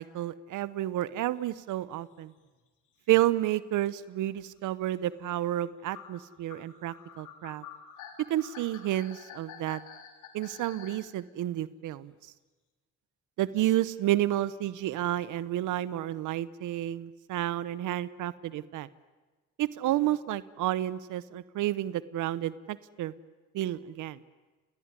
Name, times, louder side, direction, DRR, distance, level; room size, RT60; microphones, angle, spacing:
voice 1, 0.0-2.3 3.1-7.6 8.3-9.8 10.3-12.1 13.4-18.9 19.6-23.1 23.5-24.2, right 14 dB, 85° right, 17 dB, 0.9 m, -30 dB
sound 1, 2.0-2.1 2.4-2.6 3.3-3.4 3.6-3.7 4.4-4.6 5.1-5.2 5.9-11.1, left 8 dB, 85° left, 3.8 m, -48 dB
29.5 x 19.0 x 9.7 m, 1.2 s
cardioid pair, 90°, 30 cm